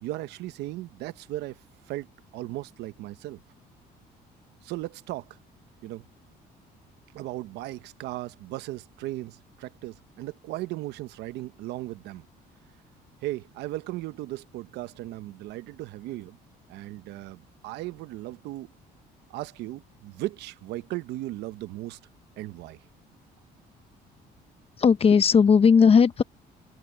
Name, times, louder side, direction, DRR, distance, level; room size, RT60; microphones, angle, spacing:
voice 1, 0.0-1.6 1.9-3.4 4.6-5.3 5.8-6.0 7.1-12.3 13.2-16.4 16.7-18.7 19.3-22.0 22.4-22.8, right 17 dB, 85° right, 0.9 m, -36 dB
voice 2, 24.8-26.2, left 6 dB, 35° left, 1.1 m, -17 dB
cardioid pair, 110°, 17 cm